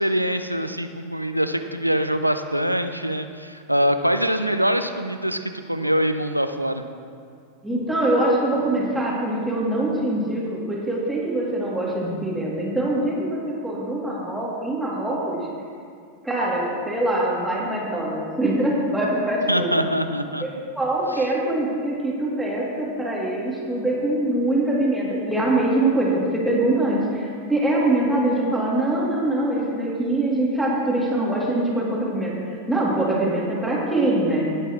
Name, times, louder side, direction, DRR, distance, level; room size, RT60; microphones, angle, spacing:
voice 1, 0.0-6.8 19.5-20.4, equal, 90° right, 8 dB, 0.6 m, -23 dB
voice 2, 7.6-15.5 16.2-19.7 20.4-20.5 20.7-34.5, right 1 dB, 5° right, -5 dB, 3.1 m, -23 dB
18.5 x 9.0 x 3.2 m, 2.3 s
figure-of-eight pair, 90°, 0 cm